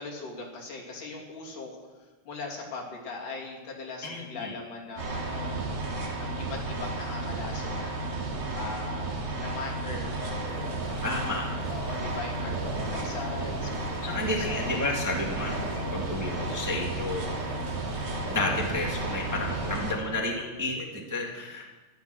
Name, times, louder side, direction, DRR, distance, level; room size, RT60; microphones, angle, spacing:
voice 1, 0.0-1.8 2.3-5.8 6.2-8.1 8.5-10.7 11.3-14.8 19.5-19.8, left 4 dB, 80° left, -1 dB, 4.3 m, -40 dB
voice 2, 4.0-4.5 11.0-11.5 14.0-17.3 18.3-21.7, left 2 dB, 10° right, -1 dB, 1.3 m, -31 dB
sound 1, 5.0-19.9, right 2 dB, 70° right, 3.9 m, -33 dB
sound 2, 10.5-19.7, left 1 dB, 35° left, 4.7 m, -41 dB
15.0 x 12.5 x 6.3 m, 1.2 s
omnidirectional pair, 3.5 m